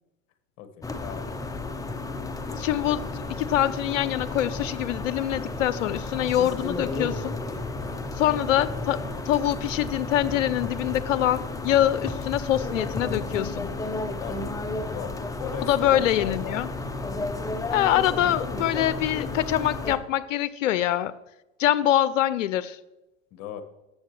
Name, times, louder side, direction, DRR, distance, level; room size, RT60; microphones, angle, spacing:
voice 1, 0.6-1.3 7.8-8.1 14.2-14.5 14.9-16.6 23.3-23.6, left 9 dB, 50° left, 9 dB, 1.3 m, -38 dB
sound 1, 0.8-20.0, left 2 dB, 10° left, 0.7 m, -32 dB
voice 2, 2.5-7.4 8.2-13.7 15.6-16.7 17.7-21.1 21.6-22.8, left 12 dB, 85° left, 17 dB, 0.5 m, -24 dB
13.5 x 7.6 x 3.2 m, 0.97 s
hypercardioid pair, 100°, 37 cm